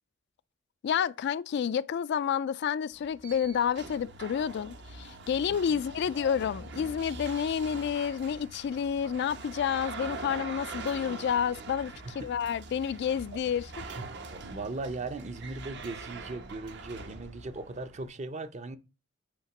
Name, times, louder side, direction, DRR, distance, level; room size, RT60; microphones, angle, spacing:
voice 1, 0.8-13.7, left 8 dB, 60° left, 0.3 m, -30 dB
sound 1, 2.9-18.1, right 3 dB, 60° right, 0.9 m, -43 dB
voice 2, 5.5-5.8 12.0-12.3 14.0-18.8, right 3 dB, 35° right, 0.6 m, -39 dB
8.4 x 2.9 x 5.9 m
head